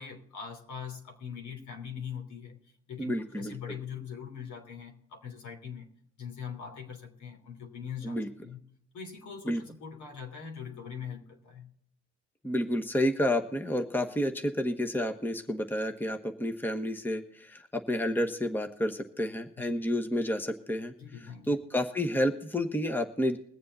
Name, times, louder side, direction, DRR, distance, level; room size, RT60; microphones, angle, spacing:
voice 1, 0.0-2.6 2.9-5.9 6.2-8.6 8.9-11.7 19.6-19.7 21.0-21.5, left 7 dB, 70° left, 3.1 m, -42 dB
voice 2, 3.0-3.5 8.0-8.3 9.4-9.6 12.4-20.9 21.5-23.4, left 1 dB, 5° left, 1.2 m, -30 dB
22.0 x 7.5 x 4.1 m
cardioid pair, 90°, 30 cm